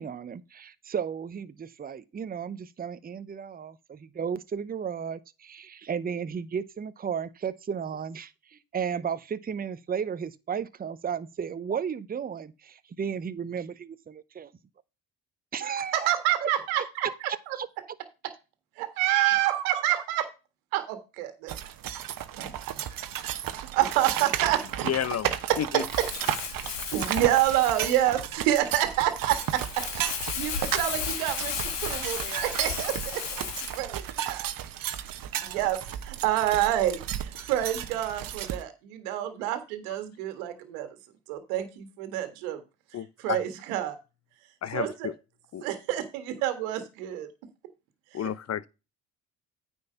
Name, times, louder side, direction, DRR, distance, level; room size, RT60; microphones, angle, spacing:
voice 1, 0.0-14.5 15.5-16.1 16.4-16.5 17.5-17.7, right 7 dB, 20° right, 0.7 m, -34 dB
voice 2, 15.9-17.1 17.5-17.6 18.8-20.3 20.7-21.5 22.4-22.8 23.7-24.6 25.7-26.1 26.5-26.6 26.9-29.8 30.2-33.5 33.7-34.5 35.4-40.9 41.3-42.6 43.2-44.0 44.7-45.1 45.6-47.3 48.1-48.3, right 13 dB, 80° right, 1.7 m, -28 dB
sound 1, 21.5-38.6, right 11 dB, 50° right, 1.1 m, -34 dB
voice 3, 24.8-25.3 25.6-25.8 42.9-43.4 44.6-45.1 45.5-45.6 48.1-48.7, left 9 dB, 35° left, 0.8 m, -30 dB
Crumpling crinkling, 25.9-33.8, left 7 dB, 70° left, 2.0 m, -35 dB
9.5 x 4.4 x 5.6 m
hypercardioid pair, 60°, 43 cm